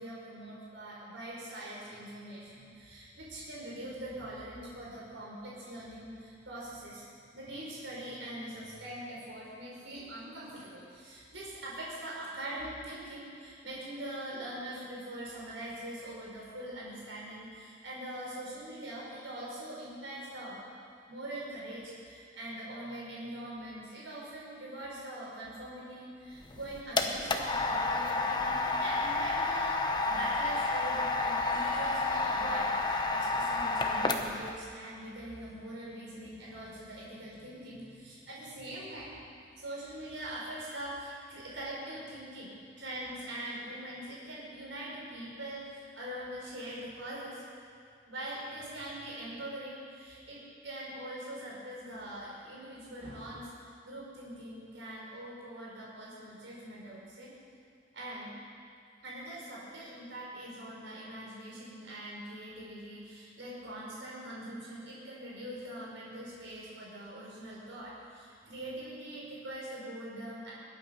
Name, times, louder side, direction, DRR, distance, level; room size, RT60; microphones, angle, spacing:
voice 1, 0.0-7.1 7.3-20.6 21.1-39.1 39.6-47.5 48.1-57.3 57.9-58.3 59.0-70.5, right 1 dB, 85° right, -5 dB, 4.8 m, -43 dB
sound 1, 26.4-34.5, left 3 dB, 25° left, 0.9 m, -30 dB
21.5 x 9.1 x 5.6 m, 2.4 s
head